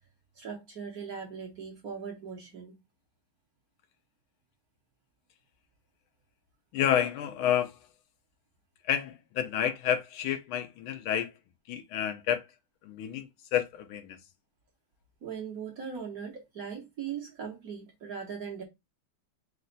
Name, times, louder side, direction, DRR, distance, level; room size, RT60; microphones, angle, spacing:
voice 1, 0.4-2.8 15.2-18.6, right 6 dB, 50° right, 1.2 m, -39 dB
voice 2, 6.7-7.8 8.8-11.4 11.7-12.5 12.8-14.2, left 10 dB, 75° left, 1.5 m, -30 dB
4.2 x 2.4 x 3.8 m
omnidirectional pair, 2.4 m